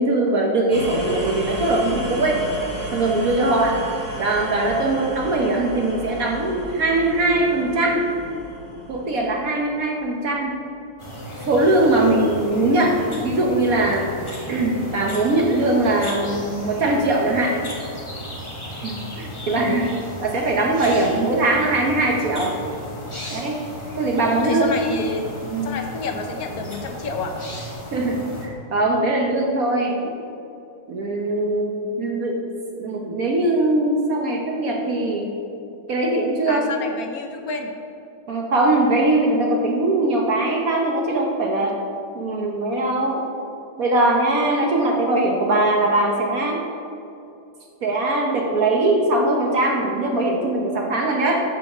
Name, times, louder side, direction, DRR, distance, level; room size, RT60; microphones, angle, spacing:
voice 1, 0.0-2.4 2.9-3.8 4.2-8.1 8.9-10.6 11.5-14.1 14.5-17.6 18.8-19.9 20.2-22.6 23.3-23.6 24.0-24.7 25.5-25.8 27.9-30.2 30.9-32.4 32.8-35.4 35.9-36.6 38.3-41.7 42.1-43.2 43.8-46.6 47.8-51.4, right 2 dB, 55° right, 0 dB, 1.1 m, -21 dB
sound 1, 0.7-10.5, equal, 35° right, 2.6 m, -34 dB
sound 2, 11.0-28.5, equal, 20° left, 1.1 m, -35 dB
voice 2, 19.4-19.8 23.2-23.3 24.4-25.3 25.6-27.3 36.5-37.7, left 4 dB, 60° left, 4 dB, 1.0 m, -29 dB
7.0 x 6.8 x 6.6 m, 2.7 s
omnidirectional pair, 2.3 m